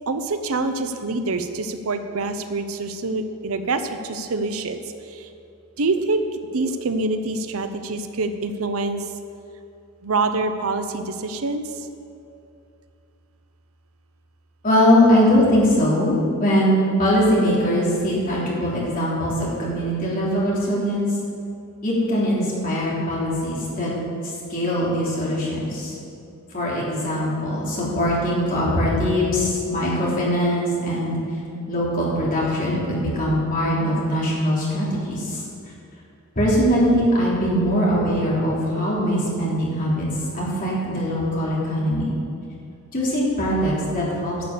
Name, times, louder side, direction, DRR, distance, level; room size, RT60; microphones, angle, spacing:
voice 1, 0.1-5.3 5.8-6.2 6.5-9.1 10.0-11.9, right 3 dB, 70° right, 8 dB, 0.7 m, -26 dB
voice 2, 14.6-21.1 21.8-23.9 24.2-26.0 26.5-31.2 31.7-35.4 36.3-40.1 40.3-42.1 42.9-44.4, equal, 40° left, -6 dB, 3.4 m, -21 dB
11.0 x 6.8 x 7.9 m, 2.5 s
head